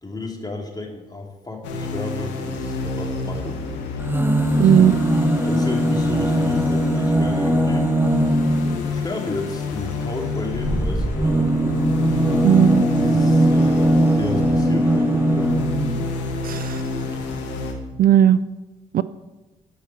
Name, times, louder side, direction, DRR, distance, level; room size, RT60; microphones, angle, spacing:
voice 1, 0.0-3.6 4.5-4.9 5.4-7.9 8.3-11.5 12.2-12.5 13.0-15.5, left 2 dB, 20° left, 0 dB, 3.0 m, -32 dB
sound 1, 1.6-17.7, left 3 dB, 80° left, 1.2 m, -29 dB
sound 2, 4.0-8.9 10.5-16.0 16.9-17.0 17.2-17.3, right 1 dB, 10° right, 0.9 m, -20 dB
voice 2, 4.6-4.9 12.4-12.8 16.4-16.8 18.0-18.4 18.9-19.0, right 10 dB, 55° right, 16 dB, 0.4 m, -15 dB
11.0 x 5.8 x 7.6 m, 1.1 s
hypercardioid pair, 45°, 18 cm